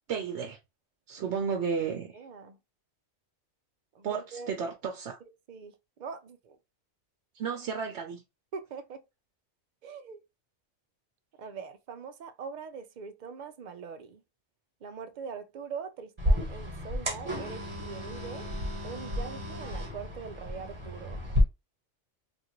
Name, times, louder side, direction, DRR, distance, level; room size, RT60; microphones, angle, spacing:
voice 1, 0.1-0.6 1.1-2.2 4.0-5.2 7.3-8.2, right 6 dB, 75° right, 0.9 m, -33 dB
voice 2, 2.1-2.6 3.9-4.5 5.5-6.6 8.5-9.0 9.8-10.2 11.4-14.2 14.8-18.5 18.8-21.2, right 5 dB, 55° right, 0.5 m, -42 dB
sound 1, 16.2-21.4, left 1 dB, 25° right, 1.1 m, -32 dB
3.0 x 2.6 x 2.9 m
omnidirectional pair, 1.2 m